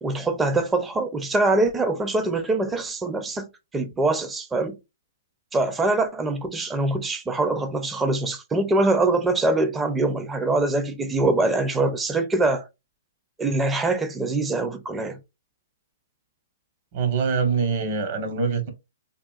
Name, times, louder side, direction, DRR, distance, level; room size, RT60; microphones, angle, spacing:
voice 1, 0.0-3.5 3.7-4.8 5.5-12.6 13.4-15.2, right 2 dB, 10° right, 0.5 m, -23 dB
voice 2, 16.9-18.7, right 5 dB, 45° right, 0.9 m, -24 dB
3.6 x 2.2 x 2.4 m
hypercardioid pair, 140°, 0 cm